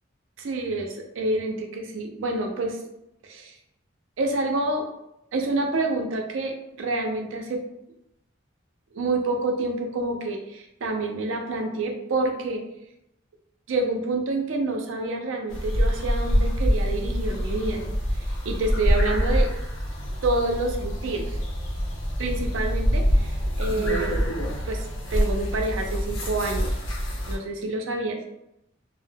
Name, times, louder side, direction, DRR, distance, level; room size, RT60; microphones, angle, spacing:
voice 1, 0.4-2.8 3.2-3.5 4.2-4.9 5.3-7.6 8.9-12.6 13.7-17.8 18.4-19.5 20.2-21.4 22.2-24.1 24.7-24.8 25.1-26.7 27.3-28.3, right 2 dB, 85° right, 3 dB, 0.5 m, -28 dB
sound 1, 15.5-27.4, equal, 80° left, 0.7 m, -25 dB
2.1 x 2.0 x 3.3 m, 0.84 s
head